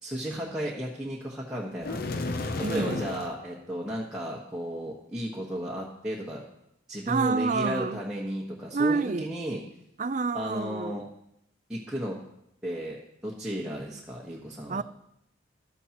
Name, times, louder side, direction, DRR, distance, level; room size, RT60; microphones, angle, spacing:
voice 1, 0.0-2.0 2.7-6.4 6.9-9.6 10.3-11.0 11.7-12.2 12.6-13.0 13.2-14.8, equal, 5° right, -5 dB, 1.3 m, -34 dB
sound 1, 1.8-3.4, left 2 dB, 45° left, 0.6 m, -32 dB
voice 2, 2.6-3.1 7.1-8.0 8.7-9.3 10.0-11.0 14.7-14.8, right 4 dB, 40° right, 14 dB, 0.4 m, -28 dB
14.5 x 12.5 x 3.0 m, 0.77 s
head